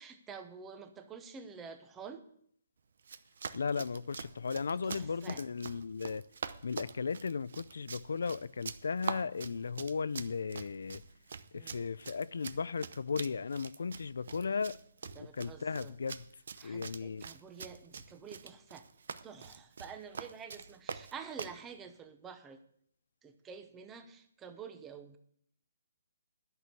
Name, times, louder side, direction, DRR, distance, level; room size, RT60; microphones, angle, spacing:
voice 1, 0.0-2.2 4.7-5.4 11.5-11.8 14.4-14.6 15.2-15.9 16.6-18.8 19.2-22.6 23.2-25.2, right 6 dB, 10° right, 0.8 m, -49 dB
Run, 3.0-21.6, right 6 dB, 65° right, 0.7 m, -45 dB
voice 2, 3.5-6.2 6.6-11.0 11.5-14.8 15.2-16.3 16.6-17.3, left 5 dB, 80° left, 0.4 m, -36 dB
11.0 x 6.1 x 8.2 m
hypercardioid pair, 165°, 0 cm